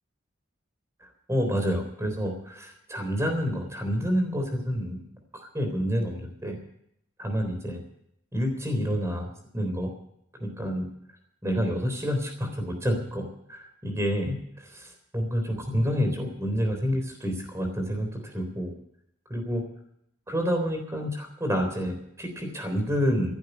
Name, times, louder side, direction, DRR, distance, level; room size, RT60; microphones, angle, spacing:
voice 1, 1.0-5.0 5.3-6.6 7.2-7.8 8.3-9.3 9.5-9.9 10.4-10.9 11.4-18.7 19.3-19.6 20.3-23.3, equal, 15° right, 5 dB, 3.7 m, -28 dB
15.0 x 11.0 x 6.8 m, 0.75 s
head